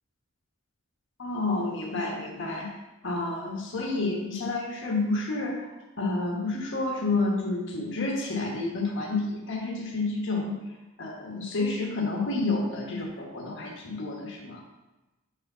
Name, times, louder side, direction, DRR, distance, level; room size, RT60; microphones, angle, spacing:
voice 1, 1.2-2.7 3.0-10.6 11.0-14.6, left 3 dB, 65° left, -1 dB, 1.2 m, -30 dB
5.0 x 4.8 x 5.5 m, 1.0 s
head